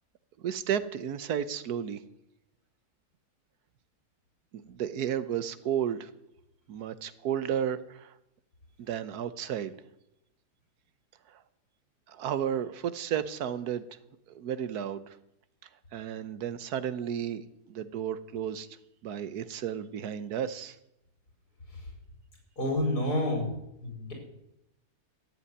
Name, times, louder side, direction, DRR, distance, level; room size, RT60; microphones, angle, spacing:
voice 1, 0.4-2.0 4.5-6.1 6.7-8.1 8.8-9.7 12.1-13.8 14.3-15.2 15.9-18.7 19.0-20.8, right 9 dB, 80° right, 14 dB, 1.4 m, -33 dB
voice 2, 22.6-23.5 23.8-24.1, left 1 dB, 80° left, 1 dB, 5.4 m, -28 dB
13.5 x 8.4 x 9.6 m, 0.84 s
omnidirectional pair, 1.7 m